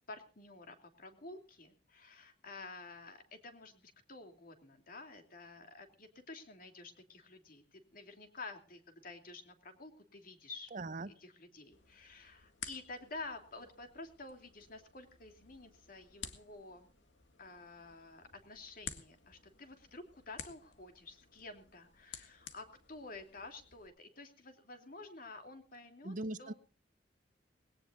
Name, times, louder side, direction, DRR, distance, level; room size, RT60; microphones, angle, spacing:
voice 1, 0.1-10.7 11.1-16.9 17.4-26.1 26.4-26.5, left 3 dB, 50° left, 6 dB, 3.0 m, -50 dB
voice 2, 10.7-11.1 26.0-26.5, right 2 dB, 45° right, 15 dB, 0.8 m, -40 dB
sound 1, 11.7-23.9, left 7 dB, 85° left, 1.9 m, -53 dB
21.0 x 17.5 x 2.6 m, 0.36 s
head